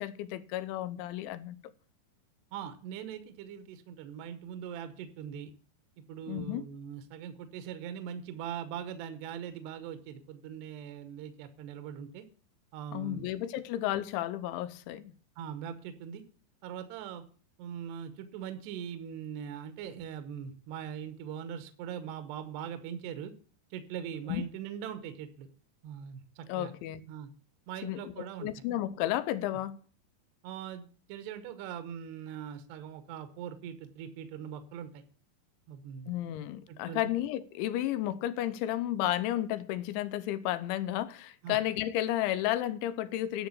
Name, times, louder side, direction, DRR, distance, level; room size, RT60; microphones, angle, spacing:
voice 1, 0.0-1.6 6.3-6.7 12.9-15.1 24.3-24.4 26.5-27.0 27.8-29.8 36.1-43.5, left 13 dB, 85° left, 3.1 m, -32 dB
voice 2, 2.5-5.5 6.1-12.3 12.7-13.2 15.4-16.2 16.6-17.2 17.6-23.3 23.7-25.5 25.8-26.7 27.1-27.3 27.7-28.5 30.4-35.0 35.7-36.1 36.7-37.1 41.4-41.6, right 8 dB, 75° right, 2.9 m, -41 dB
10.5 x 6.7 x 8.3 m
omnidirectional pair, 5.3 m